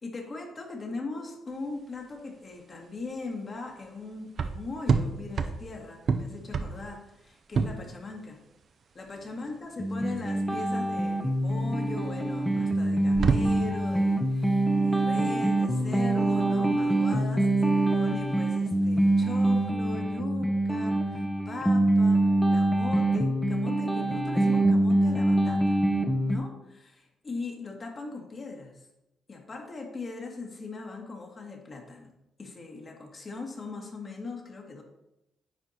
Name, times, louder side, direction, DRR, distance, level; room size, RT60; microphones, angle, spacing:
voice 1, 0.0-8.4 8.9-25.8 26.3-28.8 29.3-32.1 32.4-34.8, left 3 dB, 35° left, 2 dB, 1.5 m, -40 dB
sound 1, 1.5-19.7, right 5 dB, 50° right, 0.6 m, -33 dB
sound 2, 9.8-26.4, right 1 dB, 5° left, 0.8 m, -25 dB
9.1 x 4.4 x 4.1 m, 0.87 s
cardioid pair, 90°, 0 cm